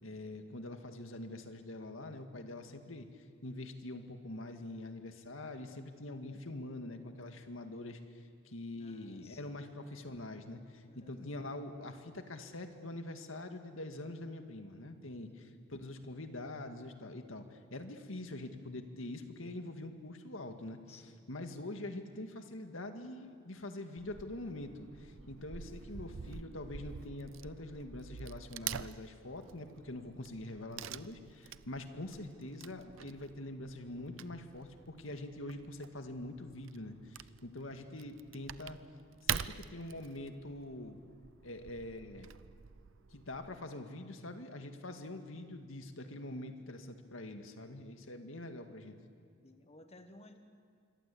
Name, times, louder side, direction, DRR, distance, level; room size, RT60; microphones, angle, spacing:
voice 1, 0.0-20.8 21.3-38.8 39.2-41.0 41.4-42.3 43.1-49.0, left 1 dB, 90° left, 6 dB, 2.0 m, -44 dB
voice 2, 8.8-9.5 10.8-11.2 15.1-15.5 20.9-21.2 25.2-25.4 49.4-50.4, left 2 dB, 30° left, 7 dB, 1.5 m, -59 dB
Wood / Tearing, 24.0-43.6, right 8 dB, 75° right, 0.6 m, -46 dB
26.5 x 23.5 x 8.6 m, 2.2 s
head